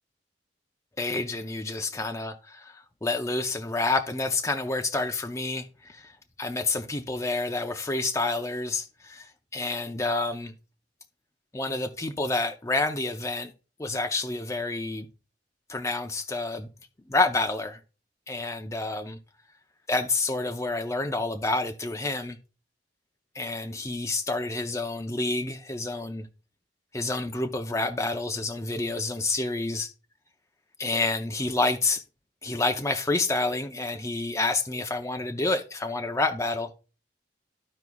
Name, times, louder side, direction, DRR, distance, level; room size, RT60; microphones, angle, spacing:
voice 1, 1.0-6.1 6.4-9.3 9.5-10.5 11.5-13.5 13.8-15.1 15.7-16.7 17.1-17.8 18.3-19.2 19.9-22.4 23.3-26.3 26.9-29.9 30.8-32.0 32.4-36.7, left 2 dB, 15° left, 0.6 m, -28 dB
14.0 x 4.7 x 2.3 m
head